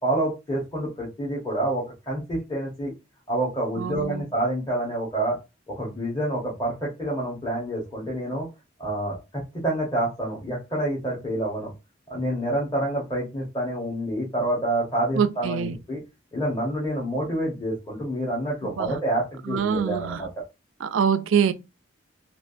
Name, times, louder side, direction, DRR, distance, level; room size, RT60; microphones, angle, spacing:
voice 1, 0.0-2.9 3.3-5.4 5.8-8.5 8.8-11.7 12.1-16.0 16.3-20.3, right 1 dB, 20° left, 1.0 m, -28 dB
voice 2, 3.8-4.3 15.2-15.8 18.6-19.0 19.5-20.2 20.8-21.5, right 7 dB, 75° right, 0.3 m, -24 dB
3.3 x 2.4 x 2.5 m
head